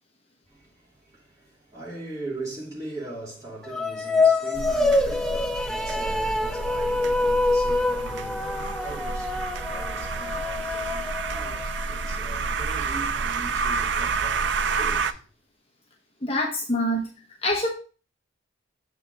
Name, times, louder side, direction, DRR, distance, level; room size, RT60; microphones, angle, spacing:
voice 1, 0.5-15.2 16.5-16.6, right 2 dB, 20° right, 2.9 m, -40 dB
sound 1, 3.6-12.1, left 2 dB, ahead, 0.4 m, -26 dB
sound 2, 4.5-15.1, right 5 dB, 60° right, 0.4 m, -30 dB
voice 2, 16.2-17.1 17.4-17.7, left 1 dB, 30° left, 1.0 m, -25 dB
7.5 x 4.6 x 3.9 m
head